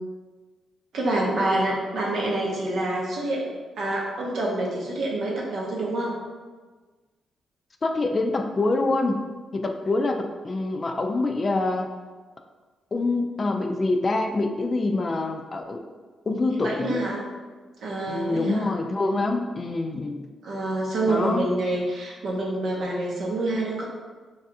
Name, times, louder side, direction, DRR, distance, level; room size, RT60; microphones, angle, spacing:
voice 1, 0.9-6.1 16.6-17.2 17.8-18.7 20.4-23.8, right 2 dB, 70° right, -3 dB, 0.7 m, -27 dB
voice 2, 7.8-9.2 9.5-11.9 12.9-15.8 16.3-17.0 18.1-20.2 21.1-21.5, left 2 dB, 40° left, 4 dB, 0.3 m, -25 dB
3.2 x 2.3 x 2.7 m, 1.4 s
supercardioid pair, 60°, 0 cm